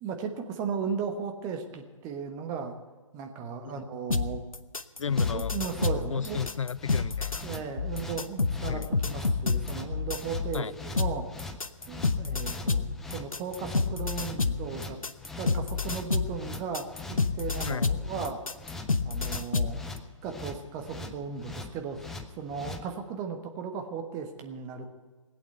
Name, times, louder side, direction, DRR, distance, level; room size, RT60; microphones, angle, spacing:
voice 1, 0.0-2.7 3.1-4.4 5.3-6.4 7.4-10.7 10.9-11.3 11.9-15.0 15.4-18.4 19.0-19.8 20.2-24.9, right 6 dB, 20° right, 5 dB, 1.3 m, -36 dB
sound 1, 4.1-10.6 11.0-19.8, left 4 dB, 80° left, 1.0 m, -29 dB
voice 2, 5.0-5.5 6.1-7.5 8.7-8.9 10.5-10.7 17.6-17.9, left 7 dB, 65° left, 19 dB, 0.4 m, -33 dB
sound 2, 5.0-22.8, left 2 dB, ahead, 0.4 m, -42 dB
19.0 x 8.5 x 8.0 m, 1.4 s
figure-of-eight pair, 140°, 18 cm